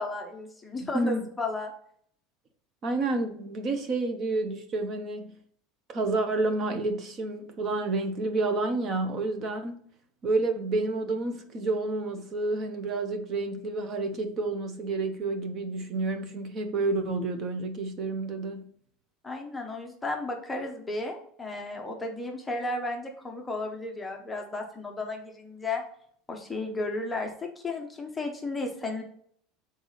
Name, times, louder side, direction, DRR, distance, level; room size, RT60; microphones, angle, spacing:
voice 1, 0.0-1.7 19.2-25.8 26.3-29.0, left 2 dB, 10° left, 0.7 m, -34 dB
voice 2, 0.8-1.3 2.8-5.3 5.9-9.8 10.2-18.7, right 2 dB, 25° right, 0.8 m, -29 dB
6.7 x 4.1 x 3.9 m
cardioid pair, 180°, 0 cm